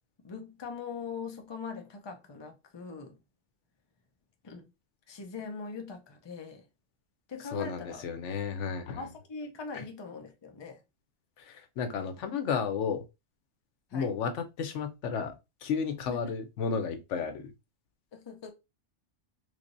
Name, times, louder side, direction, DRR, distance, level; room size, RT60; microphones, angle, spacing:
voice 1, 0.2-3.2 4.4-4.7 5.1-6.7 7.3-8.0 8.9-10.8 13.9-14.1 16.1-16.3 18.1-18.5, left 5 dB, 30° left, 0.6 m, -41 dB
voice 2, 7.5-9.0 9.7-9.8 11.4-13.0 13.9-15.3 15.6-17.5, left 6 dB, 85° left, 1.0 m, -33 dB
3.2 x 3.2 x 2.6 m
omnidirectional pair, 1.2 m